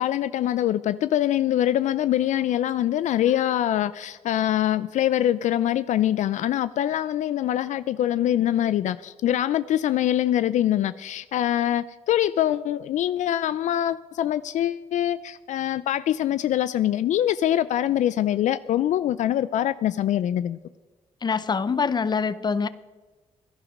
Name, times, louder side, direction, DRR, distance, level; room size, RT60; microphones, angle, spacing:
voice 1, 0.0-20.6, left 12 dB, 70° left, 15 dB, 0.4 m, -24 dB
voice 2, 21.2-22.7, left 5 dB, 35° left, 16 dB, 0.7 m, -24 dB
16.5 x 11.0 x 5.3 m, 1.3 s
cardioid pair, 85°, 13 cm